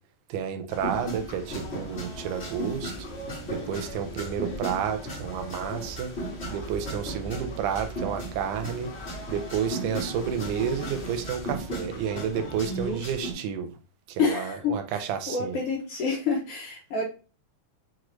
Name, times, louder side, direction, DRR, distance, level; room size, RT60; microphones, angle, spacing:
voice 1, 0.3-2.9 3.5-6.1 6.5-8.9 9.3-13.7 14.1-15.6, right 8 dB, 85° right, 2.2 m, -31 dB
sound 1, 0.7-13.3, right 1 dB, 40° left, 1.0 m, -36 dB
voice 2, 12.7-13.0 14.2-17.0, left 4 dB, 70° left, 1.6 m, -28 dB
6.3 x 2.5 x 3.0 m
omnidirectional pair, 3.5 m